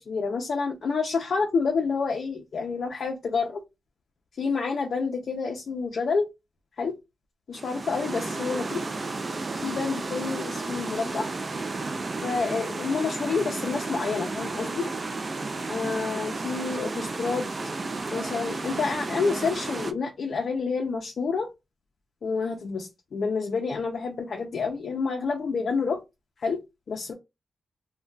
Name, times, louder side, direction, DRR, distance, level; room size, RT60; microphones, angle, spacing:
voice 1, 0.0-3.6 4.4-6.3 6.8-6.9 7.5-8.8 9.6-11.3 12.2-14.9 15.7-17.5 18.1-21.5 22.2-26.0 26.4-26.6 26.9-27.1, left 4 dB, 55° left, 0.4 m, -28 dB
sound 1, 7.5-19.9, right 3 dB, 30° right, 0.3 m, -32 dB
2.2 x 2.1 x 3.8 m
wide cardioid pair, 130°, 0 cm